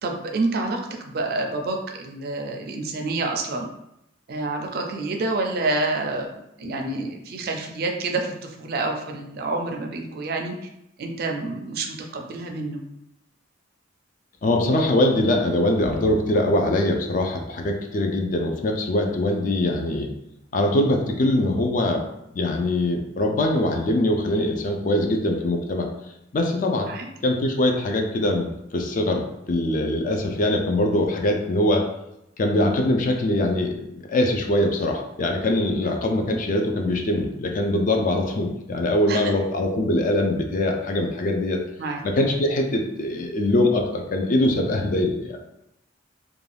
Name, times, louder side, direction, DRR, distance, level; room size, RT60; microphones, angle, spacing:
voice 1, 0.0-3.7 4.3-6.3 6.6-10.7 11.0-12.8 26.9-27.1 35.8-36.0 39.1-39.3 41.8-42.0, right 2 dB, 50° right, 3 dB, 0.4 m, -28 dB
voice 2, 14.4-20.1 20.5-22.0 22.3-25.9 26.3-26.9 27.2-31.9 32.4-41.6 42.0-45.4, left 1 dB, 45° left, 3 dB, 0.4 m, -22 dB
2.5 x 2.2 x 3.2 m, 0.83 s
head